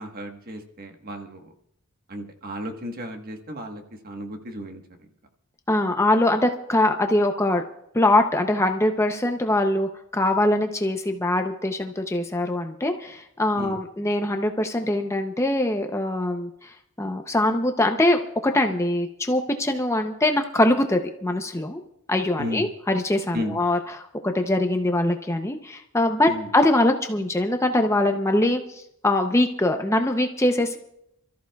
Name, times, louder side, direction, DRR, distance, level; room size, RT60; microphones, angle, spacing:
voice 1, 0.0-1.5 2.1-4.8 13.5-13.8 22.4-22.7 23.3-23.6 26.3-26.5, equal, 45° right, 4 dB, 1.4 m, -34 dB
voice 2, 5.7-7.6 7.9-21.8 22.1-30.8, left 1 dB, 15° left, 5 dB, 0.6 m, -23 dB
28.0 x 13.5 x 2.3 m, 0.78 s
head